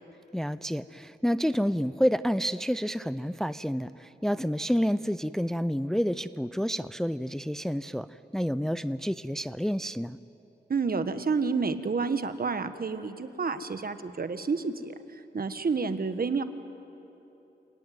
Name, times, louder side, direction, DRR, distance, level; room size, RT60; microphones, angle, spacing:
voice 1, 0.3-10.2, equal, ahead, 14 dB, 0.5 m, -29 dB
voice 2, 10.7-16.4, right 4 dB, 55° right, 10 dB, 1.4 m, -29 dB
27.5 x 18.5 x 9.4 m, 3.0 s
cardioid pair, 65°, 19 cm